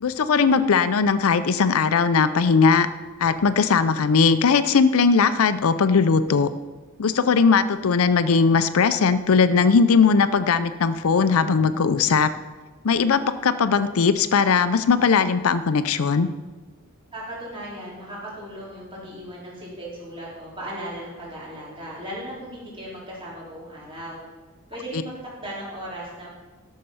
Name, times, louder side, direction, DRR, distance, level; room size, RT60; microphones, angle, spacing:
voice 1, 0.0-2.9 3.2-6.5 7.0-12.3 12.8-16.3, left 5 dB, 75° left, 12 dB, 0.5 m, -19 dB
voice 2, 17.1-24.2 24.7-26.3, right 1 dB, 25° right, -6 dB, 3.4 m, -37 dB
12.0 x 6.5 x 5.6 m, 1.3 s
head